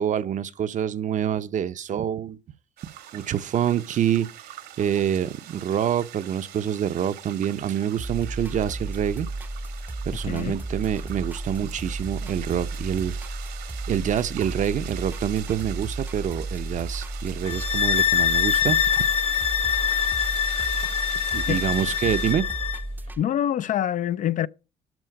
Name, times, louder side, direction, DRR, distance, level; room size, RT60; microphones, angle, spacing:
voice 1, 0.0-2.4 3.1-4.3 4.8-9.3 10.0-13.2 13.9-18.9 21.3-22.4, right 9 dB, 50° right, 0.7 m, -26 dB
sound 1, 2.8-22.3, right 12 dB, 80° right, 1.8 m, -43 dB
sound 2, 8.0-23.2, right 2 dB, 10° right, 0.6 m, -33 dB
voice 2, 10.2-10.6 21.5-21.6 23.2-24.5, left 10 dB, 50° left, 0.4 m, -25 dB
sound 3, 17.4-22.8, left 9 dB, 35° left, 1.0 m, -24 dB
12.5 x 4.4 x 7.7 m
cardioid pair, 110°, 17 cm